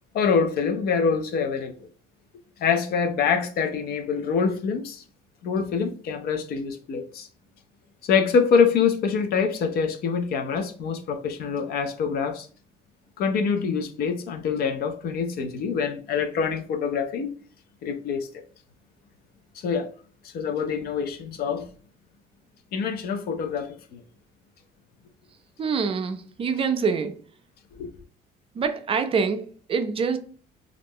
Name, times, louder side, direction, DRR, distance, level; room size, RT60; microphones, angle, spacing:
voice 1, 0.1-1.7 2.6-5.0 5.4-7.3 8.0-12.5 13.2-17.3 17.8-18.3 19.6-19.9 20.3-21.7 22.7-24.0 27.7-27.9, left 6 dB, 65° left, 0.5 m, -25 dB
voice 2, 25.6-27.2 28.5-30.2, right 5 dB, 35° right, 0.3 m, -25 dB
2.4 x 2.1 x 3.4 m
cardioid pair, 110°, 17 cm